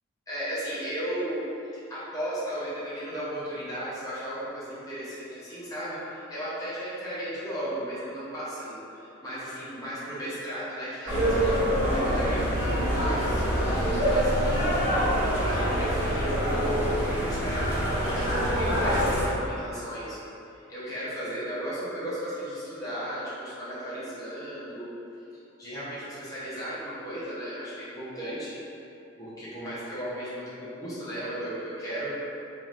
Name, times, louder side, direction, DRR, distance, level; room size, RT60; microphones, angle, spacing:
voice 1, 0.3-14.7 15.2-20.2 20.5-24.9 25.6-28.8 29.2-32.1, equal, 15° left, -12 dB, 0.9 m, -35 dB
sound 1, 11.1-19.2, equal, 20° right, 1.3 m, -25 dB
3.7 x 3.1 x 2.6 m, 2.7 s
head